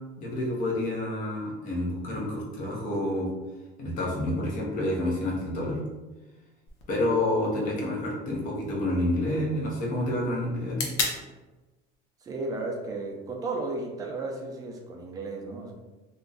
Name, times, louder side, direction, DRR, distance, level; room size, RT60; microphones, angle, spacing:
voice 1, 0.2-3.3 3.8-5.8 6.9-10.9, left 1 dB, 45° left, -3 dB, 0.9 m, -28 dB
sound 1, 6.7-14.7, left 4 dB, 75° left, 0.7 m, -40 dB
voice 2, 12.2-15.7, right 3 dB, 20° right, 0 dB, 0.4 m, -34 dB
2.5 x 2.2 x 3.8 m, 1.2 s
cardioid pair, 180°, 19 cm